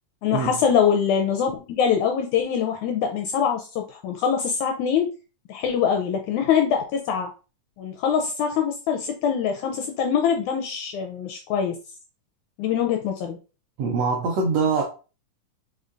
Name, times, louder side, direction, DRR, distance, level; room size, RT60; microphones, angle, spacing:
voice 1, 0.2-5.1 5.5-7.3 7.8-11.8 12.6-13.4, left 7 dB, 85° left, 1.7 m, -23 dB
voice 2, 13.8-14.8, right 4 dB, 80° right, 1.4 m, -23 dB
5.5 x 3.3 x 2.5 m
omnidirectional pair, 3.8 m